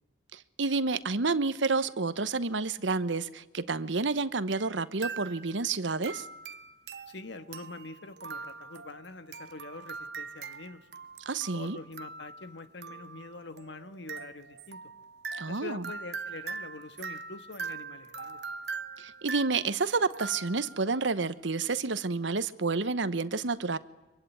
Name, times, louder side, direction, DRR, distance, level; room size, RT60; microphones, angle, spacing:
voice 1, 0.3-6.3 11.3-11.8 15.3-15.8 19.0-23.8, right 4 dB, 85° right, 1.0 m, -29 dB
sound 1, 4.5-4.8 5.0-5.7 6.0-20.9, right 4 dB, 60° right, 1.0 m, -42 dB
voice 2, 7.1-10.9 11.5-14.9 15.5-18.4, left 3 dB, 75° left, 1.5 m, -44 dB
25.5 x 23.0 x 9.4 m
head